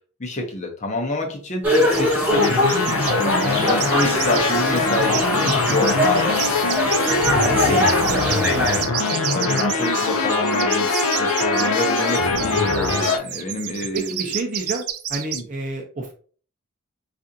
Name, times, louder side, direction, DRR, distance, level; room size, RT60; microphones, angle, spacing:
voice 1, 0.2-6.5 7.5-8.4 9.3-14.3 15.3-15.4, left 2 dB, 30° left, 2 dB, 0.7 m, -27 dB
sound 1, 1.6-8.8, left 1 dB, 5° right, 0.8 m, -22 dB
Bird Song, 1.7-2.2 2.4-15.4, right 11 dB, 80° right, 0.5 m, -30 dB
sound 2, 2.3-13.2, left 3 dB, 75° left, 0.5 m, -22 dB
voice 2, 5.3-5.7 7.2-7.8 8.1-8.8 13.9-14.8 15.1-16.1, right 2 dB, 35° right, 2 dB, 0.5 m, -30 dB
4.6 x 2.5 x 2.7 m, 0.41 s
head